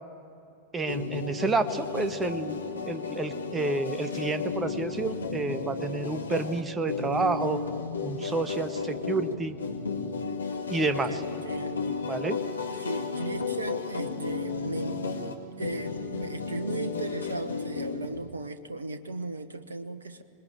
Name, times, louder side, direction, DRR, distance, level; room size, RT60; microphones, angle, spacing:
voice 1, 0.7-2.6 2.9-7.6 8.0-9.6 10.7-11.1 12.1-12.4, right 3 dB, 15° right, 10 dB, 1.3 m, -29 dB
sound 1, 0.9-18.3, left 5 dB, 75° left, 1.9 m, -33 dB
voice 2, 10.8-12.0 12.8-15.0 15.6-20.2, right 2 dB, 75° right, 9 dB, 1.1 m, -36 dB
25.5 x 20.5 x 9.0 m, 2.9 s
figure-of-eight pair, 90°, 0 cm